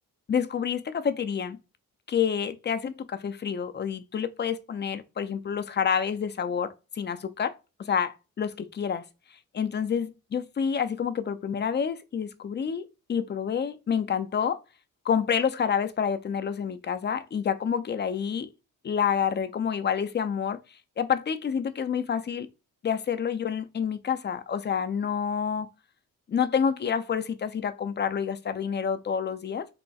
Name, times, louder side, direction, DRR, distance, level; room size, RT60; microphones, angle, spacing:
voice 1, 0.3-1.6 2.1-9.1 9.5-14.6 15.0-18.5 18.8-22.5 22.8-25.7 26.3-29.7, left 7 dB, 30° left, 0.4 m, -28 dB
4.0 x 2.0 x 2.3 m
cardioid pair, 75°, 35 cm